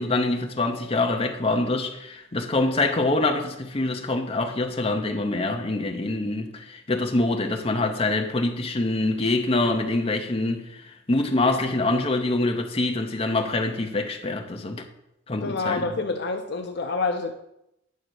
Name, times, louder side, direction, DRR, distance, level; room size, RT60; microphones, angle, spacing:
voice 1, 0.0-14.8 15.3-16.0, left 2 dB, 30° left, 0.9 m, -25 dB
voice 2, 15.4-17.3, left 3 dB, 60° left, 0.6 m, -27 dB
9.3 x 3.9 x 6.4 m
head